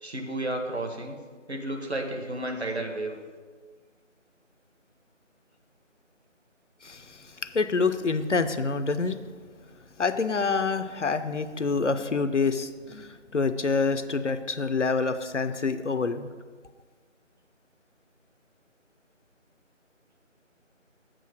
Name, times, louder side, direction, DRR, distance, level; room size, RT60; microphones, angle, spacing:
voice 1, 0.0-1.2 1.5-3.1, right 1 dB, 55° right, 3 dB, 1.3 m, -32 dB
voice 2, 6.8-7.2 7.5-9.2 10.0-16.3, left 4 dB, 70° left, 10 dB, 0.6 m, -27 dB
7.6 x 5.1 x 6.2 m, 1.5 s
figure-of-eight pair, 170°, 38 cm